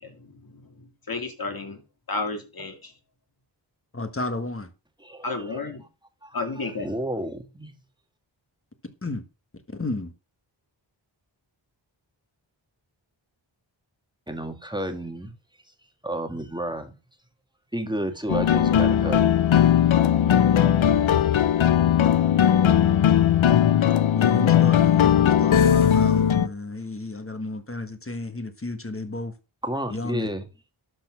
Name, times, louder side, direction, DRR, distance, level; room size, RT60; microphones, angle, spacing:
voice 1, 0.0-0.6 1.1-1.8 2.1-2.9 5.2-5.8 6.3-6.9, left 3 dB, 50° left, 2.3 m, -32 dB
voice 2, 3.9-4.7 9.0-9.2 9.7-10.1 24.1-29.3 29.9-30.3, left 2 dB, 30° left, 1.6 m, -32 dB
voice 3, 5.0-5.6 6.2-7.7 14.3-15.3 16.0-16.9 17.7-19.9 29.6-30.5, right 1 dB, 10° right, 1.7 m, -32 dB
sound 1, 18.3-26.5, left 9 dB, 85° left, 0.7 m, -18 dB
12.0 x 4.2 x 6.3 m
wide cardioid pair, 75°, 46 cm